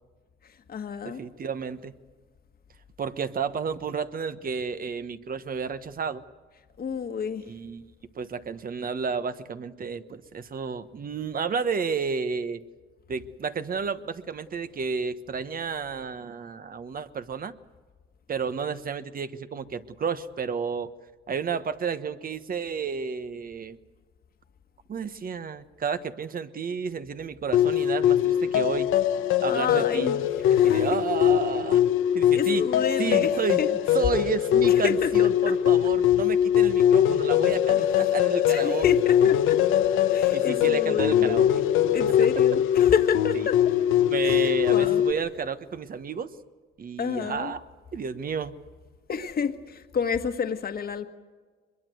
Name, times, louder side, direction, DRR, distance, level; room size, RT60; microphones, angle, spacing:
voice 1, 0.4-1.2 6.8-7.4 29.5-30.2 30.4-30.9 32.3-33.7 34.7-35.5 38.5-39.8 40.1-41.4 41.9-43.7 44.2-45.0 47.0-47.5 49.1-51.1, left 6 dB, 50° left, 8 dB, 1.6 m, -30 dB
voice 2, 1.0-1.9 3.0-6.2 7.5-12.6 13.1-17.5 18.3-20.9 21.3-23.8 24.9-28.9 29.4-30.1 30.5-31.8 32.1-32.6 33.0-38.8 40.3-41.5 44.1-46.3 46.8-47.6 47.9-48.5, right 6 dB, 45° right, 11 dB, 1.3 m, -31 dB
sound 1, 27.5-45.1, left 11 dB, 85° left, 1.1 m, -22 dB
23.0 x 22.0 x 7.9 m, 1.4 s
cardioid pair, 90°, 20 cm